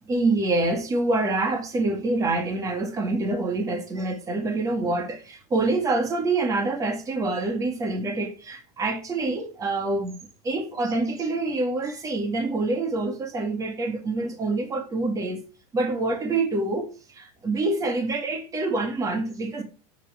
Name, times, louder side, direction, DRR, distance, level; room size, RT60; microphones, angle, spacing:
voice 1, 0.1-10.1 10.4-15.4 15.7-19.6, right 2 dB, 15° right, 1.9 m, -26 dB
9.8 x 7.8 x 4.9 m
supercardioid pair, 155°, 20 cm